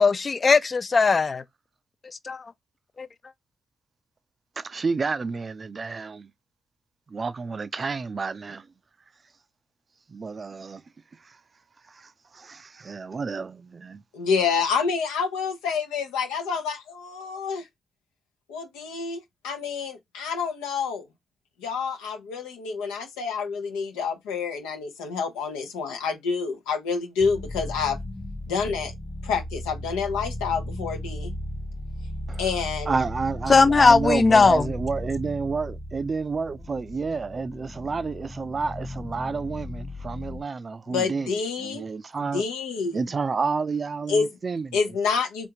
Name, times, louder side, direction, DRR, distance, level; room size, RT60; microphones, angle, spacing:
voice 1, 0.0-1.4 2.2-2.5 3.0-3.1 33.5-34.7, left 4 dB, 45° left, 0.4 m, -18 dB
voice 2, 4.6-6.3 7.1-8.7 10.1-10.8 11.2-11.4 11.9-14.0 32.3-32.4 32.9-42.4 42.9-44.8, right 4 dB, 45° right, 0.3 m, -30 dB
voice 3, 14.1-17.7 18.5-21.1 21.6-28.0 28.5-28.9 29.2-31.3 32.4-32.9 40.9-41.9 42.2-43.0 44.1-44.3 44.7-45.5, left 5 dB, 90° left, 0.6 m, -28 dB
sound 1, 27.2-40.4, left 1 dB, 10° left, 0.6 m, -36 dB
3.4 x 2.4 x 2.8 m
hypercardioid pair, 45°, 0 cm